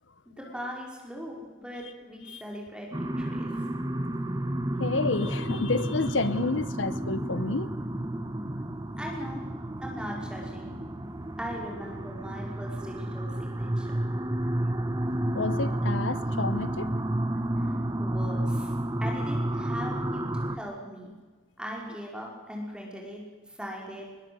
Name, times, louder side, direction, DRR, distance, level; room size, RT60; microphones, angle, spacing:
voice 1, 0.3-3.5 9.0-9.4 9.8-10.7 11.4-14.0 17.6-17.7 18.0-18.7 19.0-21.1 21.6-23.2 23.5-24.1, equal, 5° right, 5.4 m, -39 dB
sound 1, 2.9-20.6, right 1 dB, 20° right, 1.2 m, -31 dB
voice 2, 4.8-7.7 15.3-16.9, left 3 dB, 70° left, 1.2 m, -29 dB
22.0 x 21.0 x 8.1 m
head